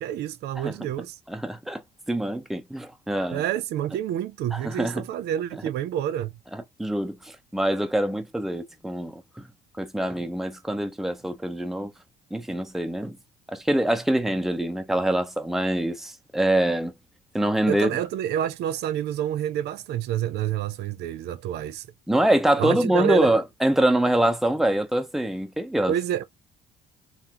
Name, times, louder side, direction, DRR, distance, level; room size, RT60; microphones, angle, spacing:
voice 1, 0.0-1.2 3.3-6.3 17.7-21.9 22.6-23.3 25.9-26.2, right 11 dB, 75° right, 0.7 m, -28 dB
voice 2, 1.3-1.8 2.1-3.4 4.5-5.0 6.5-9.4 9.8-11.9 12.3-13.2 13.5-16.9 17.3-17.9 22.1-25.9, right 1 dB, ahead, 0.8 m, -24 dB
5.8 x 2.1 x 2.9 m
cardioid pair, 110°, 17 cm